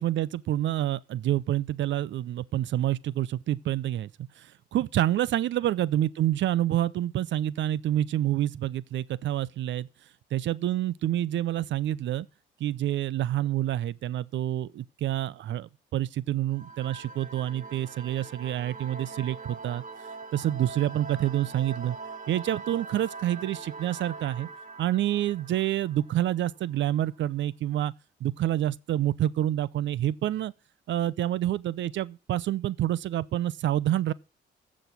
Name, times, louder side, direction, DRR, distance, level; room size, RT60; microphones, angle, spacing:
voice 1, 0.0-4.1 4.4-9.9 10.3-12.3 12.6-19.8 20.3-22.0 22.3-24.5 24.8-27.9 28.2-30.5 30.9-34.1, right 12 dB, 70° right, 0.7 m, -28 dB
sound 1, 16.5-26.9, right 4 dB, 40° right, 1.9 m, -43 dB
15.0 x 6.3 x 6.1 m
cardioid pair, 90°, 20 cm